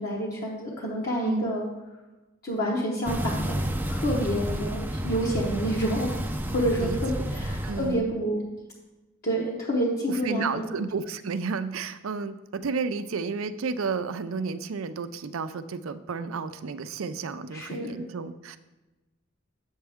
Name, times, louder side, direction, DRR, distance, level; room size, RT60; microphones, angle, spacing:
voice 1, 0.0-1.7 2.4-6.1 6.5-8.4 9.2-10.7 17.5-18.0, equal, 50° left, -4 dB, 1.1 m, -28 dB
sound 1, 3.0-8.0, equal, 10° right, 0.5 m, -30 dB
voice 2, 7.6-8.2 10.1-18.6, right 4 dB, 85° right, 12 dB, 0.5 m, -32 dB
8.8 x 7.2 x 3.5 m, 1.1 s
head